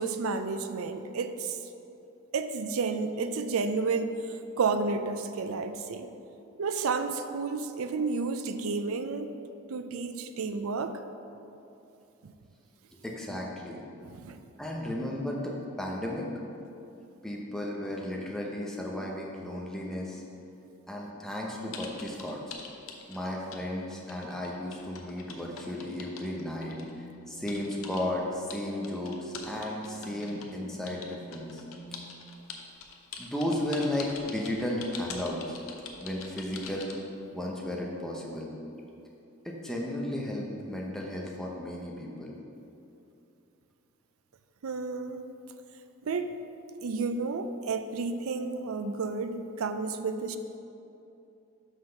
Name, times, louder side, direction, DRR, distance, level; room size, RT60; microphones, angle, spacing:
voice 1, 0.0-1.6 2.3-4.1 4.6-6.1 6.6-9.3 9.7-11.0 12.2-12.3 14.1-14.4 44.6-45.2 46.0-46.4 46.8-50.4, right 4 dB, 85° right, 9 dB, 0.5 m, -31 dB
voice 2, 13.0-13.8 14.6-16.3 17.2-20.2 20.9-22.6 23.1-32.2 33.2-35.6 36.0-36.9 37.3-38.5 39.4-42.3, left 1 dB, ahead, -2 dB, 0.8 m, -34 dB
sound 1, 21.7-23.6 23.9-26.9 27.5-28.0 28.5-30.5 30.9-37.0, left 6 dB, 75° left, 0.7 m, -43 dB
5.9 x 5.5 x 5.7 m, 2.8 s
head